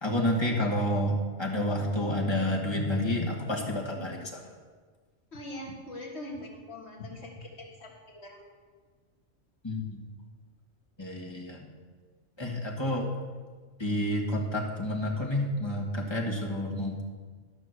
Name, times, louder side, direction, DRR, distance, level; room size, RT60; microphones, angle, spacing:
voice 1, 0.0-4.4 9.6-10.0 11.0-11.6 12.4-13.1 13.8-17.0, left 1 dB, 20° left, -2 dB, 1.5 m, -29 dB
voice 2, 5.3-8.4, left 1 dB, 60° left, -1 dB, 1.9 m, -42 dB
12.5 x 6.0 x 6.3 m, 1.5 s
omnidirectional pair, 1.3 m